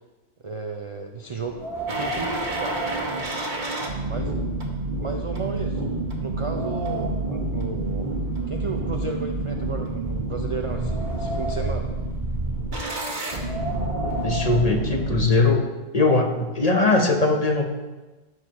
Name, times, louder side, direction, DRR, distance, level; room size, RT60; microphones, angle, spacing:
voice 1, 0.4-1.6 1.9-2.8 4.1-4.4 5.0-5.8 6.2-7.2 7.5-8.1 8.5-11.9, right 4 dB, 60° right, 3 dB, 0.3 m, -34 dB
Wind, 1.4-4.0 4.4-4.5 5.2-5.3 5.7-7.4 8.2-9.7 10.3-11.9 13.2-15.3, right 2 dB, ahead, 1.8 m, -35 dB
sound 1, 1.9-15.3, right 2 dB, 40° right, 1.3 m, -28 dB
voice 2, 14.2-15.7 15.9-17.7, left 3 dB, 35° left, 2 dB, 0.8 m, -20 dB
13.5 x 6.4 x 3.0 m, 1.2 s
omnidirectional pair, 1.3 m